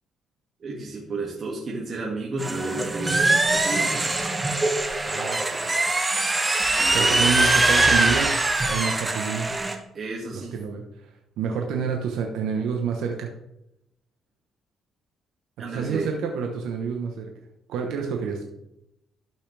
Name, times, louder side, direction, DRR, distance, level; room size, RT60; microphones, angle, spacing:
voice 1, 0.6-3.2 3.5-4.1 6.8-7.2 9.9-10.5 15.6-16.1, right 3 dB, 50° right, -3 dB, 2.0 m, -32 dB
sound 1, 2.4-9.7, right 2 dB, 20° right, 1.3 m, -22 dB
voice 2, 5.0-5.8 6.9-8.3 8.7-9.5 10.3-11.1 11.4-13.3 15.7-17.3 17.7-18.4, right 6 dB, 85° right, 2 dB, 1.0 m, -28 dB
12.5 x 5.7 x 3.4 m, 0.83 s
cardioid pair, 90°, 0 cm